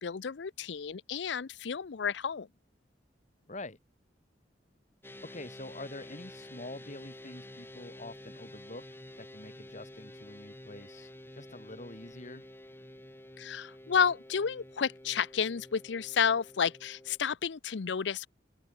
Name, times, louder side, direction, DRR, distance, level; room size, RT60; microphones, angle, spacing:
voice 1, 0.0-2.5 13.4-18.3, left 7 dB, 70° left, 0.5 m, -31 dB
voice 2, 3.5-3.8 5.2-12.5, left 2 dB, 40° left, 2.3 m, -46 dB
sound 1, 5.0-17.2, left 1 dB, 10° left, 3.2 m, -50 dB
open air
head